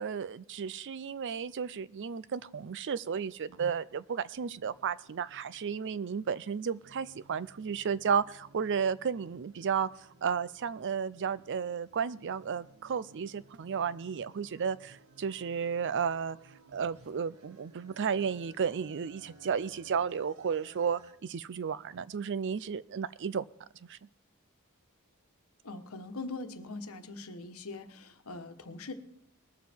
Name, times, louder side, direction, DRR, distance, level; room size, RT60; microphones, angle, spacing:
voice 1, 0.0-9.9 10.2-16.4 16.7-23.4 23.9-24.0, right 6 dB, 55° right, 17 dB, 0.5 m, -33 dB
sound 1, 4.4-21.1, right 2 dB, 70° right, 1.4 m, -59 dB
voice 2, 25.6-28.9, left 3 dB, 70° left, 7 dB, 1.2 m, -42 dB
20.5 x 7.4 x 4.5 m, 0.76 s
head